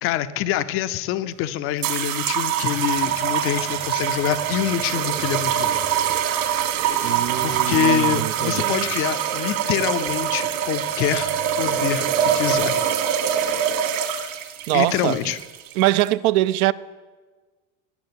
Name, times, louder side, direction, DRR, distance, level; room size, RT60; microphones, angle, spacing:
voice 1, 0.0-5.7 6.8-11.3 11.6-12.1 12.3-12.8 14.7-15.4, left 11 dB, 35° left, 0.4 m, -25 dB
sound 1, 1.8-16.1, right 9 dB, 55° right, 2.0 m, -24 dB
voice 2, 7.0-8.9 14.7-15.3 15.8-16.7, right 16 dB, 75° right, 0.6 m, -23 dB
17.5 x 7.4 x 9.5 m
supercardioid pair, 160°, 43 cm